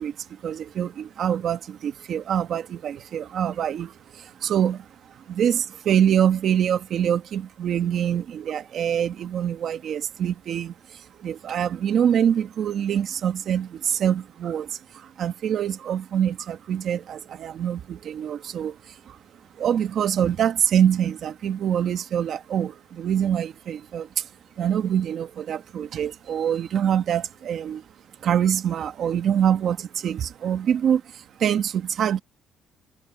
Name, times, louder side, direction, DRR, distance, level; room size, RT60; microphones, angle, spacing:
voice 1, 0.0-19.2 19.6-24.3 24.6-27.8 28.2-32.2, right 9 dB, 50° right, 1.1 m, -25 dB
cardioid pair, 170°, 0 cm